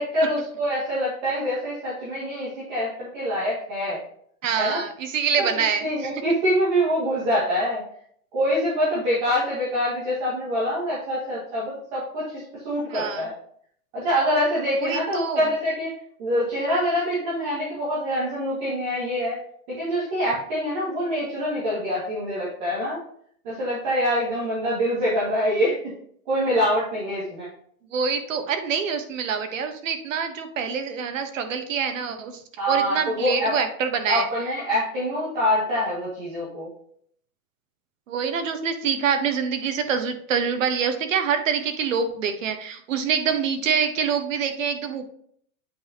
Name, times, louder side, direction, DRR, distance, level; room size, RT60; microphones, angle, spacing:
voice 1, 0.0-4.0 4.6-4.8 5.4-7.8 8.3-13.4 13.9-15.9 16.2-19.4 19.7-23.0 23.4-25.9 26.3-27.5 32.6-33.5 34.1-36.7, equal, 35° right, -7 dB, 2.1 m, -25 dB
voice 2, 4.4-6.1 12.9-13.2 14.8-15.4 27.9-32.4 32.7-34.2 38.1-45.1, right 6 dB, 65° right, 7 dB, 1.2 m, -25 dB
8.6 x 5.2 x 2.9 m, 0.63 s
supercardioid pair, 180°, 42 cm